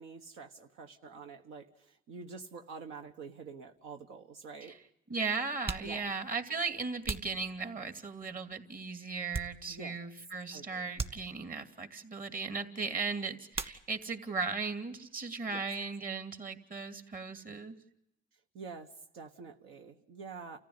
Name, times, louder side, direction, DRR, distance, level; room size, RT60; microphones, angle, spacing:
voice 1, 0.0-4.8 5.8-6.1 9.7-10.0 10.5-10.8 15.4-15.6 18.5-20.6, right 5 dB, 90° right, 4 dB, 1.5 m, -47 dB
sound 1, 3.8-3.9 4.8-4.9 5.5-8.1 8.7-10.0 10.3-10.5 10.9-11.8 13.5-14.3 14.6-15.3 15.5-17.7, right 3 dB, 30° right, 2.0 m, -43 dB
voice 2, 5.1-17.7, right 4 dB, 45° right, 7 dB, 2.7 m, -37 dB
29.5 x 15.0 x 9.7 m, 0.84 s
cardioid pair, 90°, 20 cm